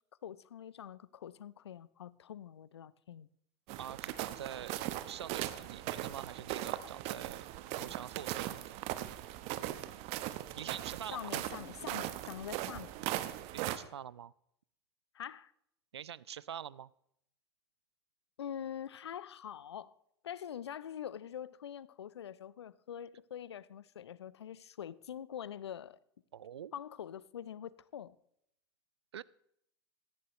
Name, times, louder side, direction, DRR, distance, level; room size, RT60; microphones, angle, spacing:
voice 1, 0.2-3.3 11.1-12.9 15.1-15.5 18.4-19.9 20.2-26.0 26.7-28.1, left 9 dB, 75° left, 0.6 m, -44 dB
sound 1, 3.7-13.8, right 14 dB, 50° right, 1.1 m, -39 dB
voice 2, 3.8-4.8 5.1-7.4 7.7-8.8 10.6-11.3 13.5-14.3 15.9-16.9 26.3-26.7 29.1-29.2, right 9 dB, 80° right, 0.5 m, -45 dB
17.5 x 14.0 x 3.1 m
figure-of-eight pair, 85°, 14 cm